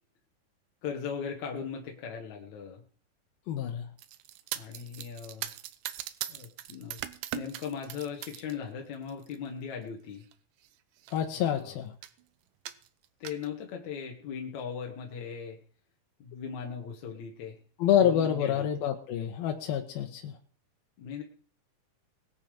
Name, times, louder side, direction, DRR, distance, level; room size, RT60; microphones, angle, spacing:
voice 1, 0.8-2.8 4.5-5.5 6.3-7.0 7.3-10.3 11.5-11.8 13.2-15.6 16.2-17.6 18.0-18.7 21.0-21.2, left 6 dB, 55° left, 1 dB, 2.6 m, -38 dB
voice 2, 3.5-3.9 11.1-11.9 17.8-20.3, left 9 dB, 80° left, 2 dB, 2.9 m, -27 dB
sound 1, 4.0-8.5 8.9-9.4 10.2-10.3 10.6-10.7 11.0-11.6 12.0-12.2 12.7-13.5, right 13 dB, 75° right, 2.2 m, -40 dB
20.5 x 8.4 x 5.3 m, 0.43 s
omnidirectional pair, 4.3 m